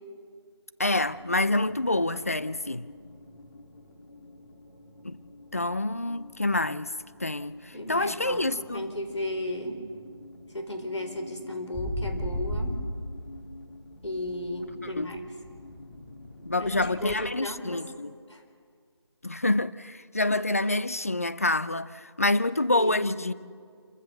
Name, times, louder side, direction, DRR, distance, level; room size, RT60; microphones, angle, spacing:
voice 1, 0.8-2.9 5.0-5.2 5.5-6.9 7.2-8.9 14.8-15.1 16.5-18.1 19.2-23.3, left 2 dB, 30° left, 0.5 m, -27 dB
sound 1, 1.0-16.8, left 2 dB, 50° left, 3.3 m, -49 dB
voice 2, 7.7-9.8 10.5-12.8 14.0-15.3 16.6-17.8 18.3-18.4 22.7-23.2, left 1 dB, 85° left, 4.4 m, -35 dB
sound 2, 11.7-13.6 13.9-17.1, equal, 5° left, 3.5 m, -35 dB
28.5 x 15.0 x 6.8 m
figure-of-eight pair, 175°, 15 cm